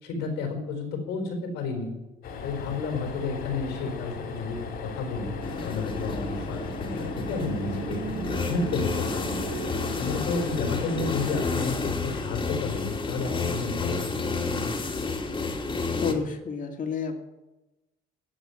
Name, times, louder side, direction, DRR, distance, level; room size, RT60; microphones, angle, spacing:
voice 1, 0.0-1.9 2.4-5.3 5.6-8.0 8.5-9.4 10.0-14.1, left 4 dB, 90° left, 4 dB, 4.5 m, -31 dB
sound 1, 2.2-11.6, left 5 dB, 70° left, 3.2 m, -38 dB
sound 2, 4.4-12.7, right 7 dB, 85° right, 1.9 m, -42 dB
sound 3, 5.4-16.1, left 3 dB, 30° left, 2.5 m, -31 dB
voice 2, 16.0-17.2, left 5 dB, 50° left, 4 dB, 2.4 m, -30 dB
16.5 x 6.2 x 9.7 m, 1.1 s
cardioid pair, 110°, 17 cm